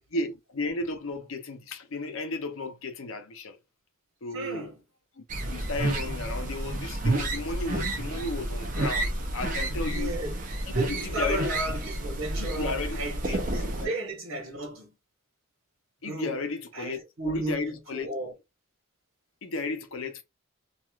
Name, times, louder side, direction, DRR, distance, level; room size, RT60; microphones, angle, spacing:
voice 1, 0.1-3.6 4.2-4.7 5.2-10.2 10.9-11.5 12.4-13.9 16.0-18.1 19.4-20.2, left 2 dB, 75° left, 0.7 m, -34 dB
voice 2, 4.3-4.8 9.9-10.4 10.7-14.9 16.0-16.4 16.7-18.3, right 2 dB, 65° right, 1.2 m, -34 dB
sound 1, 5.3-13.9, right 1 dB, 35° right, 0.5 m, -30 dB
3.0 x 2.4 x 2.3 m
head